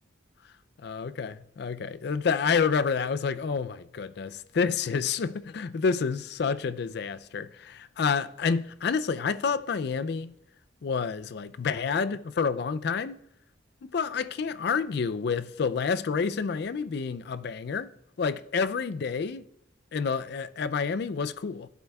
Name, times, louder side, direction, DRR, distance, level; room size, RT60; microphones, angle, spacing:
voice 1, 0.8-10.3 10.8-13.2 13.8-17.9 18.2-19.4 19.9-21.7, left 5 dB, 55° left, 0.4 m, -29 dB
15.5 x 8.2 x 2.3 m
head